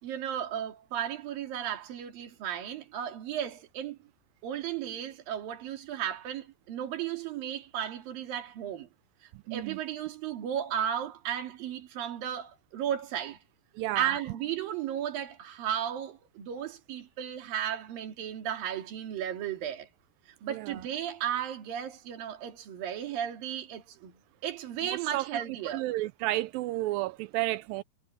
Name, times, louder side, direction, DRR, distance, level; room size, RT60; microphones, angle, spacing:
voice 1, 0.0-4.0 4.4-8.9 9.5-13.4 14.0-19.9 20.4-25.9, right 10 dB, 60° right, 4.2 m, -34 dB
voice 2, 13.8-14.1 20.5-20.6 24.8-25.2 25.7-27.8, right 18 dB, 90° right, 2.0 m, -31 dB
omnidirectional pair, 4.7 m